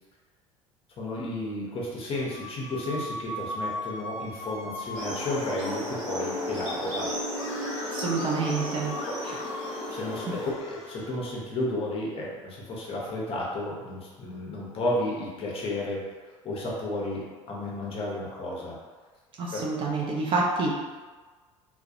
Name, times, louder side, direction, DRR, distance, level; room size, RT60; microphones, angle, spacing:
voice 1, 1.0-7.1 9.1-9.2 9.9-16.0 16.4-18.8 19.5-19.6, left 1 dB, 35° left, -4 dB, 0.7 m, -32 dB
sound 1, 2.1-5.9 7.3-11.2, left 1 dB, 65° left, 0.4 m, -39 dB
sound 2, 4.9-10.5, left 1 dB, 65° right, 0.8 m, -34 dB
voice 2, 7.9-8.9 9.2-9.4 10.3-10.4 19.4-20.7, right 3 dB, 30° right, -3 dB, 0.4 m, -28 dB
2.3 x 2.1 x 2.7 m, 1.4 s
figure-of-eight pair, 60°, 17 cm